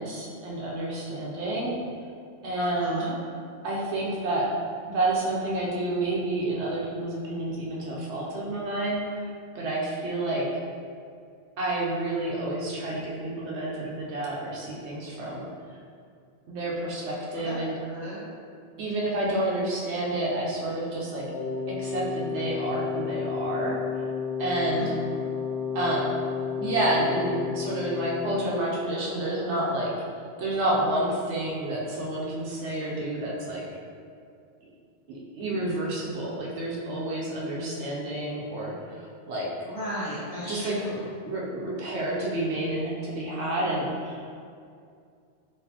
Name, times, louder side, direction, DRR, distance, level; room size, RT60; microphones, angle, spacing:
voice 1, 0.0-1.8 2.4-3.1 3.6-4.5 4.9-9.3 9.5-10.4 11.6-15.5 16.5-17.8 18.8-21.2 21.7-23.8 24.4-24.9 25.7-26.2 26.6-29.9 30.4-33.6 35.1-39.5 40.5-41.0 41.2-44.2, right 1 dB, 75° right, -4 dB, 1.0 m, -29 dB
voice 2, 2.6-3.1 17.3-17.6 17.9-18.2 24.8-24.9 25.2-25.3 39.7-41.1, equal, 35° left, -10 dB, 1.1 m, -35 dB
Wind instrument woodwind instrument, 21.3-28.6, left 6 dB, 80° left, 1.1 m, -32 dB
4.0 x 3.0 x 2.8 m, 2.3 s
omnidirectional pair, 1.2 m